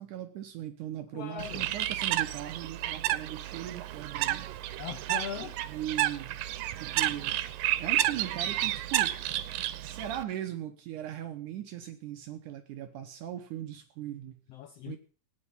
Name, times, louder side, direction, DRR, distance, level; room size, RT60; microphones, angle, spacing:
voice 1, 0.0-4.4 5.7-6.4 6.8-7.4 7.8-9.2 9.8-14.4 14.8-15.0, right 11 dB, 75° right, 2.4 m, -39 dB
voice 2, 1.1-1.7 4.8-5.6 14.5-15.0, left 9 dB, 80° left, 1.4 m, -39 dB
Bird, 1.4-10.2, right 14 dB, 90° right, 2.6 m, -31 dB
17.5 x 9.9 x 5.5 m
omnidirectional pair, 3.9 m